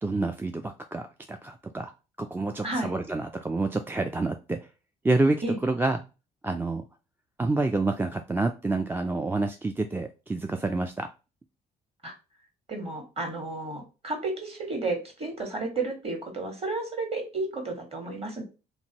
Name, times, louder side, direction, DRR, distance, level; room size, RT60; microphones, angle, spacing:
voice 1, 0.0-1.9 2.2-4.6 5.0-6.0 6.4-6.8 7.4-11.1, right 2 dB, 10° right, 6 dB, 0.3 m, -28 dB
voice 2, 12.7-18.4, right 2 dB, 30° right, 2 dB, 1.4 m, -32 dB
2.6 x 2.6 x 2.9 m, 0.30 s
supercardioid pair, 60°, 19 cm